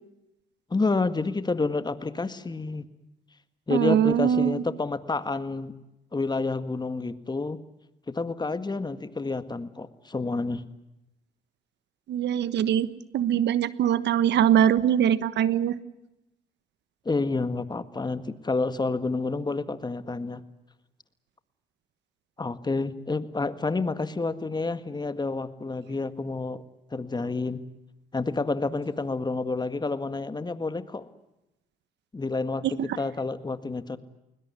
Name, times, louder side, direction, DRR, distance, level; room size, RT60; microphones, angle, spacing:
voice 1, 0.7-2.9 3.7-5.7 6.1-7.6 8.1-10.6 17.0-20.4 22.4-26.6 26.9-27.6 28.1-31.1 32.1-34.0, left 3 dB, 25° left, 12 dB, 1.8 m, -29 dB
voice 2, 3.7-4.6 12.1-12.9 13.1-15.8 32.6-32.7, right 10 dB, 75° right, 16 dB, 1.2 m, -22 dB
20.5 x 20.5 x 9.6 m, 0.92 s
supercardioid pair, 70°, 18 cm